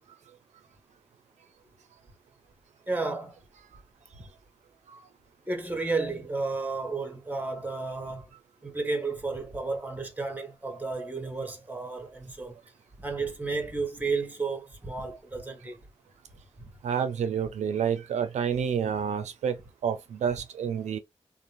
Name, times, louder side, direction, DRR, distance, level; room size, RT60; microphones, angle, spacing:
voice 1, 2.9-3.4 5.4-8.3 8.6-12.5 13.0-15.8 16.6-16.7, right 3 dB, 15° right, 1.0 m, -32 dB
voice 2, 16.8-21.0, right 7 dB, 80° right, 0.4 m, -29 dB
2.5 x 2.1 x 3.0 m
cardioid pair, 55°, 12 cm